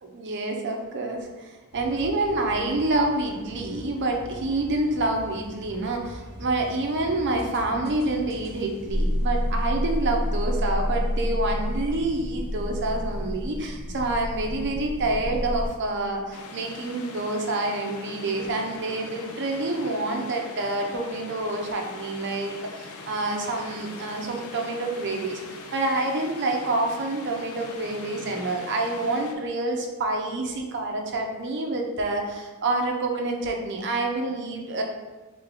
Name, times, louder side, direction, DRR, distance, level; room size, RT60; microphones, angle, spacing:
voice 1, 0.0-25.4 25.7-34.8, right 2 dB, 55° right, 2 dB, 0.6 m, -27 dB
sound 1, 1.7-10.1, equal, 45° left, 0.9 m, -43 dB
sound 2, 8.9-15.7, equal, 20° left, 0.5 m, -28 dB
sound 3, 16.3-29.3, left 3 dB, 70° left, 0.5 m, -42 dB
3.5 x 3.3 x 3.7 m, 1.2 s
head